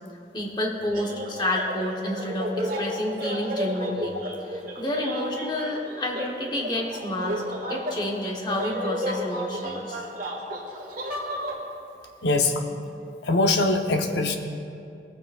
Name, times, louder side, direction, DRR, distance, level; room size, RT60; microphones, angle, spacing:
voice 1, 0.3-4.2 4.4-7.4 7.7-10.0, left 1 dB, 25° left, -1 dB, 1.1 m, -29 dB
sound 1, 0.9-11.5, equal, 50° right, 1.7 m, -33 dB
voice 2, 12.2-12.6 13.2-14.4, left 2 dB, 80° left, 5 dB, 0.8 m, -22 dB
18.0 x 9.2 x 2.4 m, 2.5 s
head